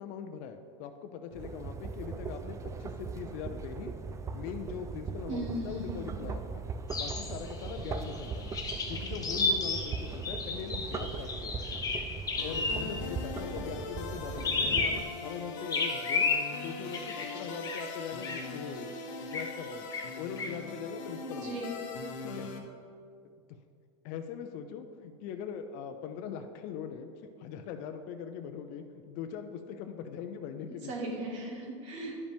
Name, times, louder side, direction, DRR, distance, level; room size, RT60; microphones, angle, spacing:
voice 1, 0.0-3.9 4.3-6.6 7.0-8.5 8.9-11.6 12.4-16.3 16.6-18.9 19.2-19.8 20.2-21.6 22.2-22.5 24.0-30.9, left 7 dB, 55° left, 6 dB, 0.5 m, -41 dB
sound 1, 1.3-15.0, right 5 dB, 20° right, 0.4 m, -39 dB
voice 2, 5.3-6.1 21.2-21.7 30.8-32.2, right 1 dB, 75° right, -1 dB, 1.9 m, -37 dB
sound 2, 6.9-13.1 14.4-15.3 15.7-17.9 18.2-18.5 19.3-19.6 19.9-20.6, left 4 dB, 20° left, 0.8 m, -33 dB
sound 3, 12.4-22.6, left 4 dB, 80° left, 0.9 m, -41 dB
10.5 x 5.1 x 3.5 m, 2.3 s
supercardioid pair, 115°, 16 cm